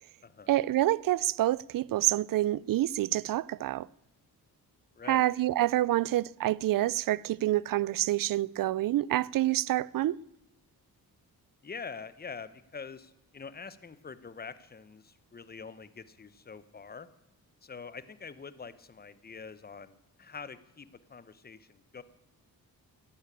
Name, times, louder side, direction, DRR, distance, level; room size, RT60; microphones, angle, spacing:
voice 1, 0.5-3.9 5.1-10.2, right 14 dB, 60° right, 0.5 m, -27 dB
voice 2, 5.0-5.3 11.6-17.1 17.6-22.0, left 5 dB, 25° left, 0.9 m, -45 dB
13.5 x 11.0 x 8.6 m
cardioid pair, 95°, 38 cm